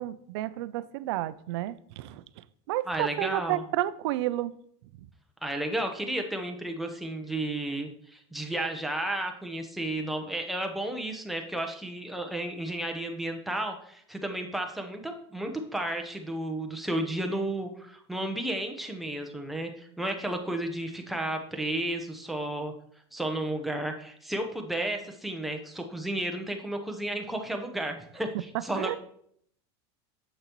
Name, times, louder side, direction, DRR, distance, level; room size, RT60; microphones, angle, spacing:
voice 1, 0.0-2.2 2.7-4.5 28.8-29.0, right 15 dB, 75° right, 16 dB, 0.4 m, -31 dB
voice 2, 2.9-3.6 5.4-22.7 23.1-29.0, right 1 dB, ahead, 3 dB, 0.8 m, -33 dB
7.0 x 6.5 x 3.0 m, 0.65 s
supercardioid pair, 130°, 14 cm